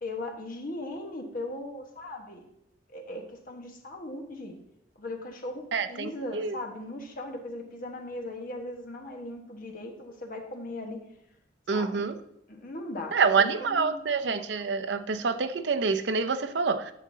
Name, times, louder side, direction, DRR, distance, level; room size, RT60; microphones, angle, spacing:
voice 1, 0.0-2.4 2.9-4.5 5.0-11.0 11.7-12.1 12.5-14.0, left 1 dB, 50° left, 2 dB, 1.3 m, -38 dB
voice 2, 5.7-6.6 11.7-12.1 13.1-16.9, right 5 dB, 70° right, 10 dB, 0.6 m, -27 dB
11.0 x 7.3 x 2.8 m, 0.81 s
head